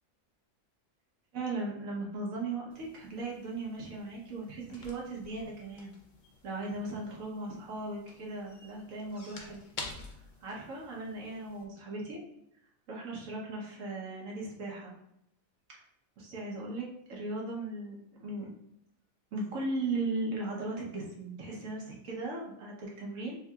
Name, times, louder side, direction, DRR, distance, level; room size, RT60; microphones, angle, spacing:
voice 1, 1.3-5.9 6.4-9.6 10.4-12.2 12.9-14.9 16.2-18.0 18.2-18.5 19.3-23.4, right 2 dB, 75° right, -3 dB, 1.4 m, -37 dB
sound 1, 2.7-11.6, left 3 dB, 50° left, 0.6 m, -50 dB
6.1 x 2.7 x 2.3 m, 0.78 s
omnidirectional pair, 1.4 m